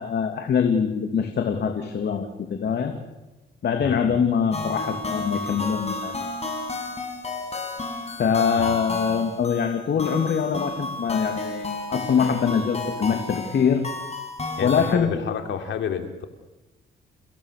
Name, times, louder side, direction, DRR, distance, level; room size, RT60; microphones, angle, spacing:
voice 1, 0.0-2.9 3.6-6.3 8.2-13.8 14.6-15.2, left 6 dB, 55° left, 4 dB, 2.7 m, -23 dB
voice 2, 3.8-4.1 8.5-8.8 14.6-16.3, left 7 dB, 70° left, 6 dB, 3.3 m, -30 dB
sound 1, 4.5-15.0, left 2 dB, 30° left, 6.5 m, -32 dB
30.0 x 17.0 x 6.8 m, 1.1 s
cardioid pair, 90°, 20 cm